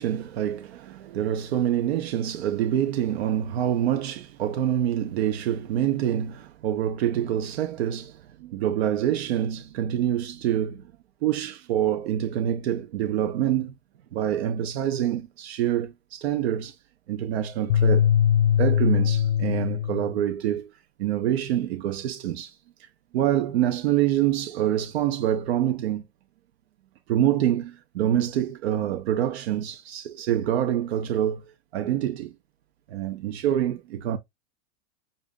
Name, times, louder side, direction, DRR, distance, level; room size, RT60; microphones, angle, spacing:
voice 1, 0.0-10.9 11.2-13.7 14.1-16.8 17.1-18.1 18.6-20.7 21.0-22.6 23.1-26.0 27.1-32.3 32.9-34.2, right 11 dB, 70° right, 0.8 m, -26 dB
sound 1, 17.7-20.2, left 10 dB, 65° left, 0.5 m, -21 dB
6.8 x 2.6 x 2.3 m
supercardioid pair, 165°, 33 cm